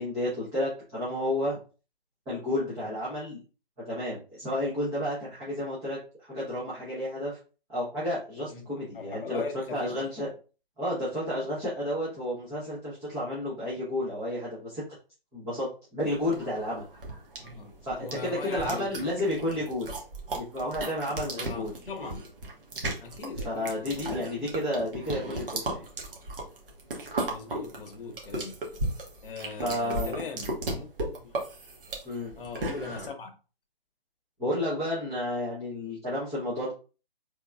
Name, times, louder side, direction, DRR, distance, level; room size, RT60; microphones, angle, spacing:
voice 1, 0.0-1.6 2.3-3.4 3.9-7.4 7.7-9.4 9.7-10.3 10.8-14.8 15.3-16.8 17.8-19.9 20.3-21.7 23.4-25.9 29.6-30.2 32.0-32.3 34.4-36.7, left 1 dB, 10° right, 0.6 m, -31 dB
voice 2, 8.5-10.1 17.4-17.7 18.0-19.0 21.4-22.2 23.0-24.2 27.3-28.5 29.2-31.4 32.4-33.3, left 4 dB, 60° left, 0.9 m, -40 dB
sound 1, 16.1-33.1, right 2 dB, 60° right, 1.3 m, -35 dB
3.8 x 3.4 x 2.3 m
figure-of-eight pair, 145°, 31 cm